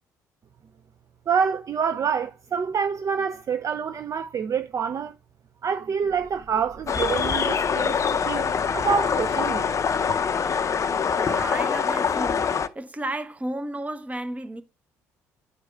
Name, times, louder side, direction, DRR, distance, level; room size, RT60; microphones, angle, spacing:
voice 1, 1.3-5.1 5.6-9.7, right 6 dB, 40° right, 0.4 m, -27 dB
sound 1, 6.0-12.2, equal, 70° right, 3.3 m, -44 dB
sound 2, 6.9-12.7, left 6 dB, 35° left, 0.5 m, -24 dB
voice 2, 11.2-14.6, right 1 dB, 15° right, 0.8 m, -33 dB
11.5 x 4.7 x 2.2 m
hypercardioid pair, 55°, 9 cm